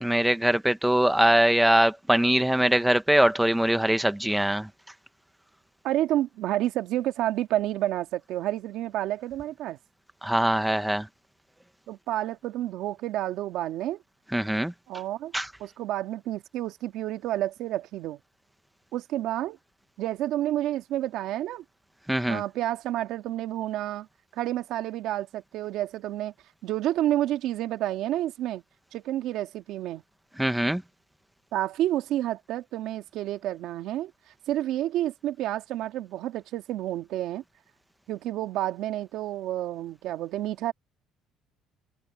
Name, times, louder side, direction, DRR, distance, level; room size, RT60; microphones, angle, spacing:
voice 1, 0.0-4.7 10.2-11.1 14.3-14.7 15.3-15.5 22.1-22.4 30.4-30.8, right 1 dB, 5° right, 1.0 m, -22 dB
voice 2, 5.8-9.8 11.9-14.0 14.9-15.3 15.6-18.2 18.9-19.6 20.0-21.6 22.3-24.1 24.3-26.3 26.6-28.6 28.9-30.0 31.5-34.1 34.5-37.4 38.1-40.7, right 13 dB, 70° right, 1.8 m, -29 dB
cardioid pair, 110°, 0 cm